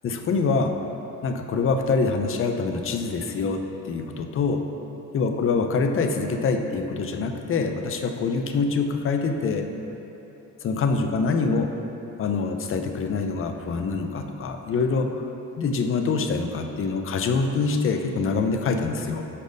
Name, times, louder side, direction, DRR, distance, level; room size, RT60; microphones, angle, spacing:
voice 1, 0.0-0.7 1.2-4.6 5.1-9.7 10.6-11.7 12.2-15.2 15.6-19.2, left 4 dB, 45° left, 5 dB, 0.5 m, -25 dB
5.0 x 4.2 x 5.1 m, 3.0 s
cardioid pair, 90°, 30 cm